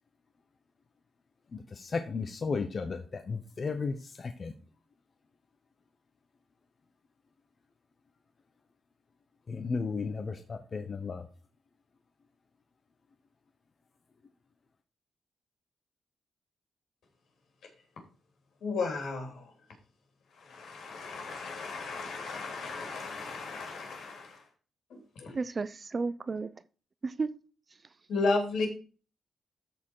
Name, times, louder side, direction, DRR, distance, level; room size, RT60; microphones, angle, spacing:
voice 1, 1.5-4.5 9.5-11.3, left 4 dB, 40° left, 0.8 m, -34 dB
voice 2, 18.6-19.5 20.4-24.4 24.9-25.4 28.1-28.7, left 3 dB, 75° left, 3.2 m, -34 dB
voice 3, 25.3-26.5 27.0-27.3, right 4 dB, 30° right, 0.5 m, -32 dB
13.0 x 4.5 x 4.7 m
cardioid pair, 120°, 0 cm